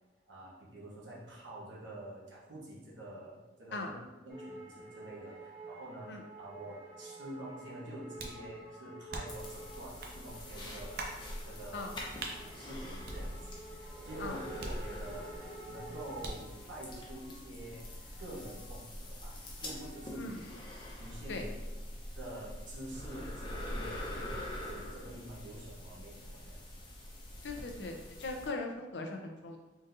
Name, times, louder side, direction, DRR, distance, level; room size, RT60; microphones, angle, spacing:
voice 1, 0.3-11.9 12.3-15.3 15.7-17.9 18.2-20.3 21.0-21.5 22.1-26.6, right 1 dB, 85° right, -6 dB, 1.1 m, -47 dB
sound 1, 4.3-18.8 19.2-20.4 20.7-21.2, right 2 dB, 15° right, 1.0 m, -51 dB
sound 2, 8.2-8.5 9.1-9.5 10.0-10.2 11.0-11.2 12.2-12.4 13.1-13.7 14.6-15.3 16.2-16.5, right 2 dB, 55° right, 0.6 m, -41 dB
sound 3, 9.3-28.5, left 1 dB, 25° left, 0.7 m, -45 dB
voice 2, 27.4-29.6, left 3 dB, 70° left, 3 dB, 0.6 m, -39 dB
4.0 x 3.9 x 2.6 m, 1.1 s
head